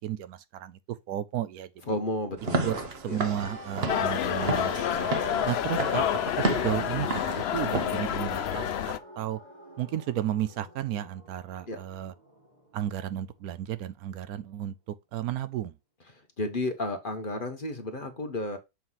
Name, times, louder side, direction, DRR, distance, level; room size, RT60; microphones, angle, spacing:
voice 1, 0.0-1.7 2.6-2.8 3.0-5.1 5.4-6.1 6.4-9.4 9.8-12.1 12.7-14.7 15.1-15.7, right 11 dB, 75° right, 1.0 m, -33 dB
voice 2, 1.8-3.2 5.3-5.5 11.7-11.8 16.1-18.6, left 1 dB, 40° left, 1.0 m, -33 dB
Walk footsteps / Siren, 2.4-8.0, right 3 dB, 45° right, 1.1 m, -33 dB
sound 1, 3.4-13.3 13.6-13.7, equal, 30° right, 1.4 m, -44 dB
sound 2, 3.9-9.0, left 10 dB, 65° left, 0.6 m, -29 dB
7.2 x 3.1 x 5.6 m
omnidirectional pair, 1.7 m